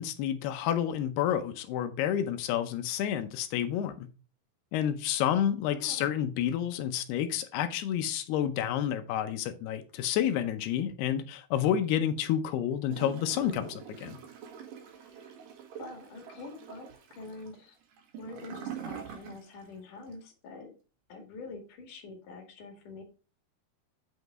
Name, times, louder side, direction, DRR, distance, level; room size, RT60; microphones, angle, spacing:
voice 1, 0.0-4.1 4.7-14.2, left 10 dB, 80° left, 2.8 m, -29 dB
voice 2, 5.8-6.1 15.1-15.3 15.8-17.8 18.2-20.7 21.1-23.0, left 3 dB, 55° left, 3.0 m, -46 dB
Gurgling / Toilet flush, 12.9-19.7 20.0-20.1, right 8 dB, 60° right, 3.1 m, -44 dB
8.9 x 5.2 x 4.7 m
omnidirectional pair, 4.8 m